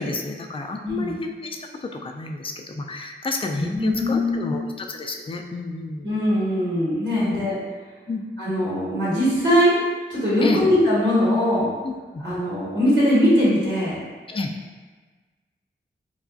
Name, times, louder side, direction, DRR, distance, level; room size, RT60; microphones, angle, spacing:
voice 1, 0.0-6.1 7.2-7.4 8.1-8.2 10.4-10.6 11.8-12.2 14.3-14.5, left 3 dB, 25° left, 3 dB, 0.3 m, -30 dB
voice 2, 0.8-1.1 3.6-4.7 6.0-7.6 8.4-9.7 10.1-11.7 12.2-14.0, equal, 65° right, -10 dB, 1.4 m, -21 dB
3.3 x 2.3 x 2.5 m, 1.4 s
cardioid pair, 45°, 20 cm